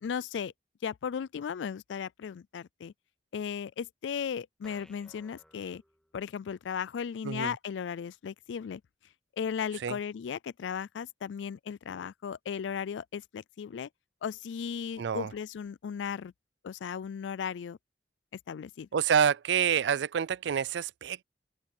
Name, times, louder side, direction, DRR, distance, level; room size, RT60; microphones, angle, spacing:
voice 1, 0.0-0.5 0.8-2.9 3.3-5.8 6.1-8.8 9.4-13.9 14.2-16.3 16.6-17.8 18.5-18.9, left 7 dB, 85° left, 0.4 m, -36 dB
sound 1, 4.6-6.6, equal, 5° left, 2.5 m, -60 dB
voice 2, 15.0-15.3 18.9-21.2, right 7 dB, 75° right, 0.4 m, -27 dB
open air
head